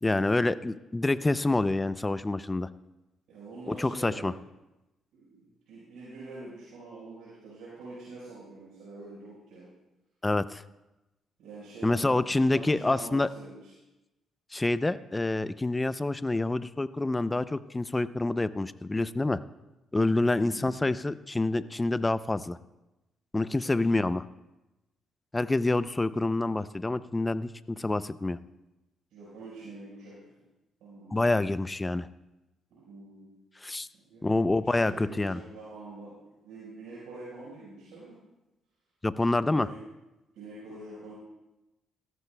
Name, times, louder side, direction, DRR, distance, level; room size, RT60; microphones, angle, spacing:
voice 1, 0.0-2.7 3.7-4.3 10.2-10.6 11.8-13.3 14.5-19.4 19.9-22.6 23.3-24.3 25.3-28.4 31.1-32.1 33.6-33.9 34.2-35.4 39.0-39.7, left 2 dB, 15° left, 15 dB, 0.4 m, -27 dB
voice 2, 3.3-4.4 5.1-9.7 11.4-13.7 20.3-20.8 23.6-23.9 29.1-30.3 30.8-31.3 32.7-33.3 33.9-38.2 39.5-39.8 40.3-41.1, right 2 dB, 90° right, -8 dB, 4.4 m, -45 dB
17.0 x 14.0 x 2.2 m, 0.99 s
cardioid pair, 90°, 0 cm